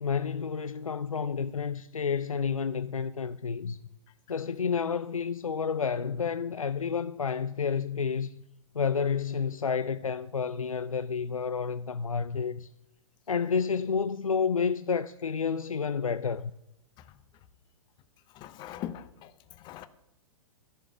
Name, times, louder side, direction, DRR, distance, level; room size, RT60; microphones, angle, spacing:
voice 1, 0.0-3.8 4.3-8.3 8.7-12.7 13.3-16.5, left 6 dB, 80° left, 0.5 m, -30 dB
voice 2, 18.3-19.9, left 11 dB, 25° left, 0.7 m, -42 dB
11.0 x 6.9 x 9.4 m
figure-of-eight pair, 105°, 17 cm